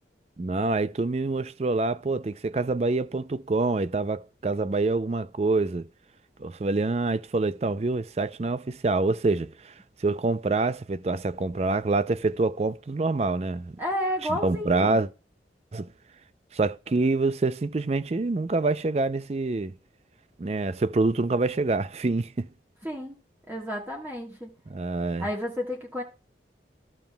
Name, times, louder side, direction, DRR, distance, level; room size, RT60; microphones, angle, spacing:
voice 1, 0.4-5.8 6.4-9.7 10.0-13.8 14.3-15.1 15.7-15.9 16.5-19.7 20.4-22.5 24.7-25.3, right 3 dB, 35° right, 0.4 m, -26 dB
voice 2, 13.8-15.0 22.8-23.2 23.5-24.5 25.2-26.0, equal, 10° right, 1.5 m, -31 dB
13.5 x 7.1 x 2.3 m
head